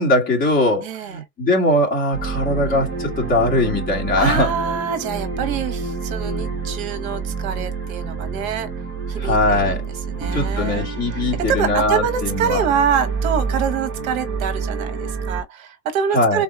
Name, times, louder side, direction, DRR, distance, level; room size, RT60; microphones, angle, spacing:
voice 1, 0.0-4.5 9.2-9.8 10.3-12.6 16.1-16.4, left 1 dB, 15° left, 1.6 m, -20 dB
voice 2, 0.8-1.2 4.2-8.7 9.1-9.7 10.1-16.4, right 7 dB, 55° right, 1.1 m, -25 dB
sound 1, 2.1-15.4, right 4 dB, 20° right, 1.0 m, -27 dB
4.0 x 2.7 x 4.0 m
supercardioid pair, 160°, 49 cm